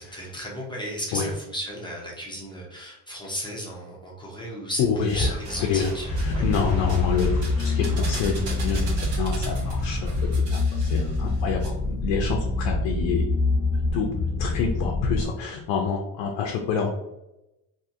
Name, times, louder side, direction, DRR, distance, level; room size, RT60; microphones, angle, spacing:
voice 1, 0.0-6.1 6.3-6.5, equal, 10° left, -3 dB, 0.6 m, -34 dB
sound 1, 4.7-5.6 5.8-11.7 11.9-12.0, right 3 dB, 65° right, 1.0 m, -40 dB
voice 2, 4.8-5.3 5.7-5.9 6.3-10.6 10.9-13.2 13.9-14.1 14.4-16.9, left 6 dB, 85° left, 1 dB, 0.6 m, -27 dB
sound 2, 5.4-10.4, right 1 dB, 35° right, 1.0 m, -35 dB
sound 3, 6.1-15.2, left 3 dB, 35° left, 0.9 m, -26 dB
2.7 x 2.6 x 2.4 m, 0.91 s
cardioid pair, 130°, 44 cm